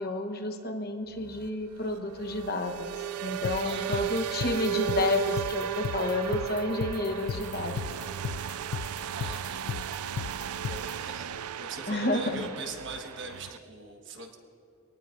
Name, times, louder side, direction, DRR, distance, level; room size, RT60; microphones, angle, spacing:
voice 1, 0.0-7.8 8.3-8.8 11.9-12.5, left 2 dB, 45° left, 5 dB, 1.1 m, -31 dB
sound 1, 1.2-13.6, right 10 dB, 85° right, 0.4 m, -35 dB
sound 2, 3.4-10.9, left 7 dB, 85° left, 0.4 m, -35 dB
voice 2, 3.6-4.1 9.1-9.8 10.5-14.4, right 3 dB, 55° right, 3 dB, 1.4 m, -41 dB
24.0 x 18.5 x 2.6 m, 2.8 s
head